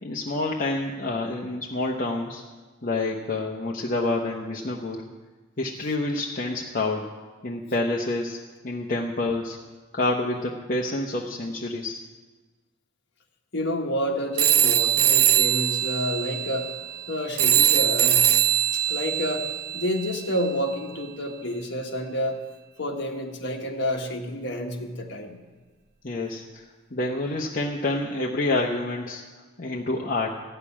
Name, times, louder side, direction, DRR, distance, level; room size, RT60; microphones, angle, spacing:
voice 1, 0.0-2.4 2.8-5.0 5.6-7.1 7.4-8.4 8.6-9.6 9.9-12.0 26.0-29.2 29.6-30.4, left 2 dB, 40° left, -1 dB, 0.9 m, -28 dB
voice 2, 13.5-16.7 17.1-18.4 18.7-22.4 22.8-25.4, equal, 55° left, 2 dB, 1.5 m, -29 dB
sound 1, 14.4-20.5, right 10 dB, 50° right, 0.5 m, -22 dB
15.0 x 6.8 x 9.8 m, 1.3 s
head